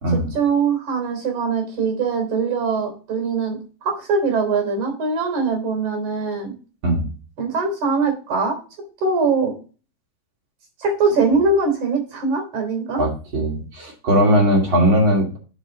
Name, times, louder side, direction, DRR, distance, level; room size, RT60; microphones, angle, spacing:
voice 1, 0.1-6.5 7.4-8.6 9.0-9.5 10.8-13.0, right 4 dB, 60° right, 3 dB, 4.8 m, -22 dB
voice 2, 13.0-15.4, equal, 40° right, -1 dB, 3.0 m, -19 dB
9.5 x 5.4 x 3.9 m, 0.36 s
omnidirectional pair, 3.9 m